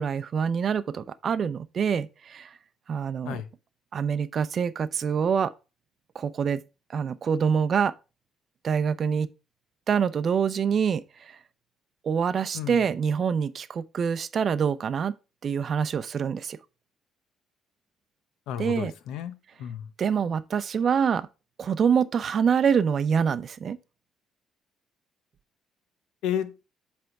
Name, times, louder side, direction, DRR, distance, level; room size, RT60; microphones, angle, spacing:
voice 1, 0.0-2.5 2.9-3.4 3.9-5.5 6.1-6.6 6.9-7.9 8.6-9.3 9.9-11.4 12.0-15.1 15.4-16.6 18.6-18.9 20.0-21.3 21.6-23.8, right 7 dB, 45° right, 0.5 m, -25 dB
voice 2, 18.5-19.9 26.2-26.6, left 9 dB, 85° left, 0.8 m, -32 dB
7.7 x 3.5 x 4.6 m
cardioid pair, 105°, 0 cm